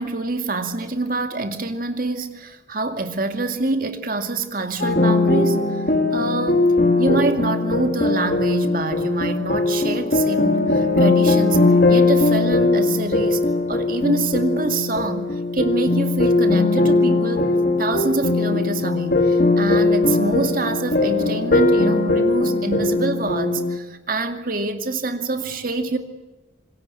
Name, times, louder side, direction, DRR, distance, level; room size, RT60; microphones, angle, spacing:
voice 1, 0.0-5.8 6.1-6.7 7.0-13.4 13.7-17.5 17.8-26.0, right 2 dB, 45° right, 2.3 m, -26 dB
sound 1, 4.8-23.8, left 2 dB, 50° left, 2.7 m, -19 dB
26.5 x 21.5 x 8.5 m
head